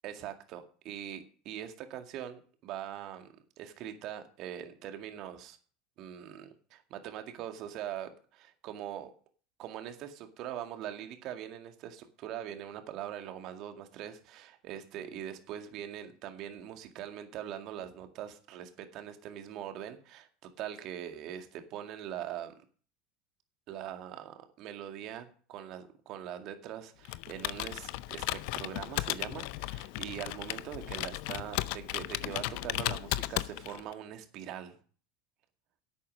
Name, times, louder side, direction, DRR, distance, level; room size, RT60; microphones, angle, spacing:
voice 1, 0.0-3.3 3.6-5.6 6.0-9.1 9.6-22.5 23.7-28.2 28.5-34.8, right 10 dB, 50° right, 7 dB, 2.0 m, -42 dB
Computer keyboard, 27.0-33.9, left 19 dB, 60° left, 0.6 m, -35 dB
10.5 x 8.5 x 6.4 m, 0.42 s
hypercardioid pair, 80°, 0 cm